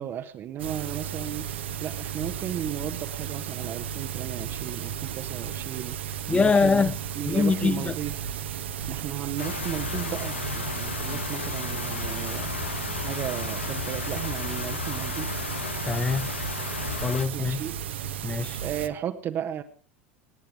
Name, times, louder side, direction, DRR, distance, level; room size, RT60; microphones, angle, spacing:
voice 1, 0.0-6.8 7.1-8.3 8.6-12.6 12.9-15.4 17.3-17.7 18.6-19.6, right 10 dB, 40° right, 1.3 m, -35 dB
sound 1, 0.6-18.9, right 9 dB, 70° right, 1.4 m, -34 dB
voice 2, 6.3-6.9 7.3-7.9 15.9-16.3 17.0-17.6 18.2-18.6, left 4 dB, 15° left, 1.0 m, -23 dB
sound 2, 9.4-17.3, left 6 dB, 80° left, 1.0 m, -34 dB
26.5 x 10.5 x 4.8 m
figure-of-eight pair, 80°, 6 cm